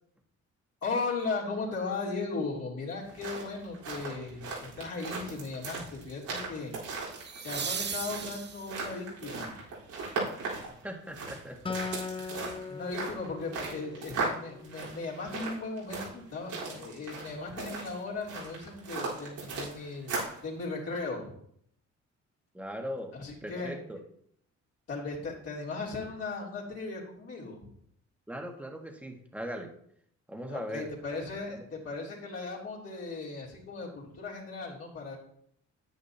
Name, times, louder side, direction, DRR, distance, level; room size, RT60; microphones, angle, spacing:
voice 1, 0.8-6.7 7.4-9.6 12.7-20.2 20.4-21.3 23.1-23.8 24.9-27.7 30.5-35.2, left 3 dB, 55° left, -5 dB, 3.2 m, -37 dB
sound 1, 2.9-20.4, right 3 dB, 90° right, 4.0 m, -38 dB
sound 2, 4.1-4.4 7.1-9.0 11.9-12.0, right 7 dB, 35° right, 0.7 m, -37 dB
voice 2, 10.8-11.8 12.2-12.4 22.5-23.1 23.4-24.0 28.3-29.7 30.3-30.9 31.5-31.7, equal, 5° right, 2 dB, 1.7 m, -39 dB
Acoustic guitar, 11.7-15.1, left 5 dB, 20° left, 0.4 m, -40 dB
10.0 x 8.9 x 2.9 m, 0.68 s
cardioid pair, 90°, 30 cm